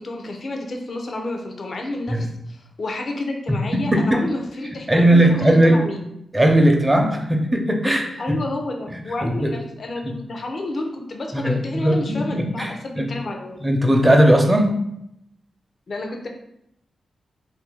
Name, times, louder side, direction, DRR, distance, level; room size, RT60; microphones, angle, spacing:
voice 1, 0.0-6.1 8.2-13.6 15.9-16.3, left 2 dB, 60° left, 2 dB, 0.6 m, -30 dB
voice 2, 4.9-5.8 6.3-8.4 9.2-9.5 10.0-10.1 11.3-13.1 13.6-14.7, right 1 dB, 20° right, 2 dB, 0.7 m, -18 dB
2.7 x 2.6 x 3.8 m, 0.79 s
supercardioid pair, 45°, 0 cm